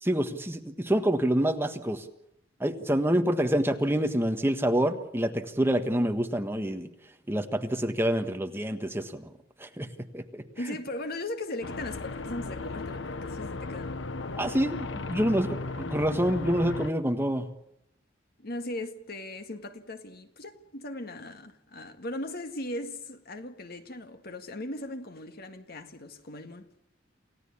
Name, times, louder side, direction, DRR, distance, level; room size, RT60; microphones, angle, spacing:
voice 1, 0.0-2.1 2.6-6.9 7.3-9.3 9.6-10.4 14.4-17.5, right 1 dB, 15° right, 1.4 m, -27 dB
voice 2, 10.6-14.0 18.4-26.7, left 1 dB, 55° left, 1.9 m, -38 dB
sound 1, 11.6-16.9, left 3 dB, 75° left, 1.0 m, -36 dB
28.5 x 16.5 x 8.6 m
head